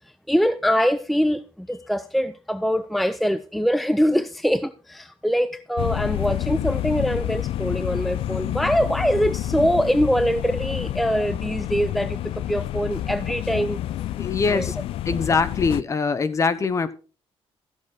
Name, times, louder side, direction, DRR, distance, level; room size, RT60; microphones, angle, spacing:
voice 1, 0.3-13.8 14.5-14.7, equal, ahead, 0.5 m, -23 dB
sound 1, 5.8-15.8, left 13 dB, 70° left, 0.4 m, -28 dB
voice 2, 14.2-14.8 15.1-16.9, left 4 dB, 30° left, 1.0 m, -23 dB
13.5 x 7.2 x 4.6 m
cardioid pair, 130°, 10 cm